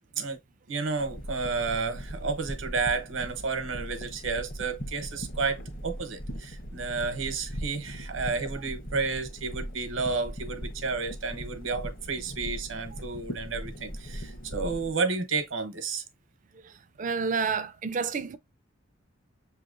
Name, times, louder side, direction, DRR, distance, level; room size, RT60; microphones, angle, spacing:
voice 1, 0.7-16.0, right 4 dB, 75° right, 1.0 m, -31 dB
sound 1, 1.0-14.9, equal, 45° left, 1.0 m, -39 dB
voice 2, 17.0-18.4, right 5 dB, 40° right, 0.5 m, -29 dB
6.7 x 2.9 x 2.5 m
head